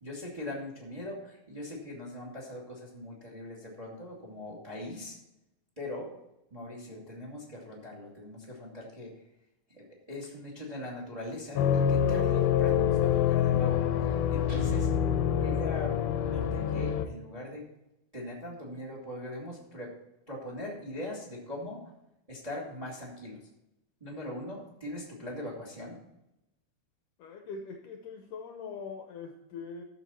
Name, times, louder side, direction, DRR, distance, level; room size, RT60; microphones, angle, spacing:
voice 1, 0.0-5.2 5.8-6.1 6.5-9.1 9.7-14.9 15.4-17.6 18.1-19.9 20.3-21.8 22.3-23.4 24.0-26.0, left 1 dB, 10° right, -2 dB, 1.7 m, -41 dB
sound 1, 11.6-17.1, left 9 dB, 90° left, 2.6 m, -26 dB
Guitar, 14.5-16.2, left 2 dB, 50° right, 0.7 m, -41 dB
voice 2, 27.2-29.8, left 5 dB, 75° left, 4 dB, 2.0 m, -42 dB
12.5 x 7.0 x 4.4 m, 0.90 s
omnidirectional pair, 4.4 m